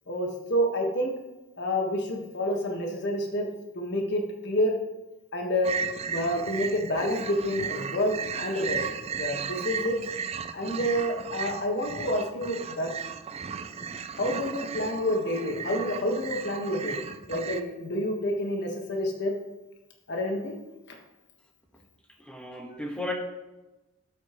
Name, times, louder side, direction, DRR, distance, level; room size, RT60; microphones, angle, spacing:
voice 1, 0.1-1.1 1.6-3.5 3.7-4.7 5.3-5.7 6.0-8.8 9.2-10.0 10.5-12.9 14.2-17.0 17.3-19.3 20.1-20.6, equal, 55° left, 2 dB, 1.6 m, -28 dB
sound 1, 5.6-17.6, right 6 dB, 30° right, 0.4 m, -35 dB
voice 2, 22.2-23.1, left 2 dB, 5° left, 1 dB, 1.4 m, -34 dB
12.5 x 8.4 x 3.1 m, 1.1 s
head